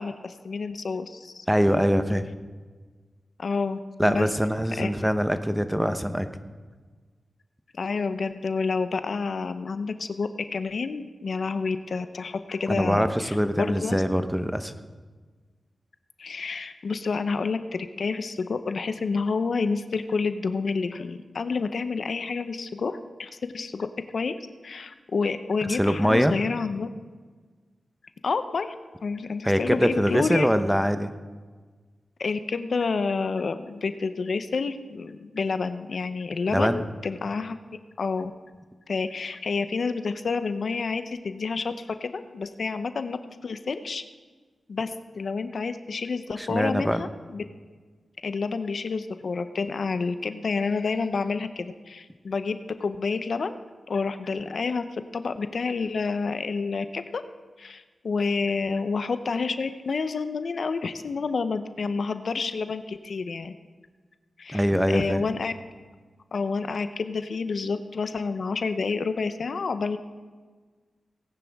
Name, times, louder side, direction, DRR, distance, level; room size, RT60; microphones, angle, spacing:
voice 1, 0.0-1.5 3.4-4.3 4.8-5.1 7.7-14.0 16.2-23.9 24.1-24.3 24.6-26.9 28.2-28.7 29.0-30.5 32.2-37.5 38.0-38.3 38.9-44.0 44.7-47.4 48.2-53.6 53.9-57.2 57.6-63.5 64.4-65.5 66.3-70.0, left 4 dB, 70° left, 10 dB, 0.6 m, -29 dB
voice 2, 1.5-2.3 4.0-6.3 12.7-14.7 25.7-26.3 29.4-31.1 36.5-36.8 46.4-47.0 64.5-65.2, equal, 5° right, 9 dB, 0.8 m, -23 dB
18.0 x 10.0 x 3.5 m, 1.4 s
cardioid pair, 65°, 0 cm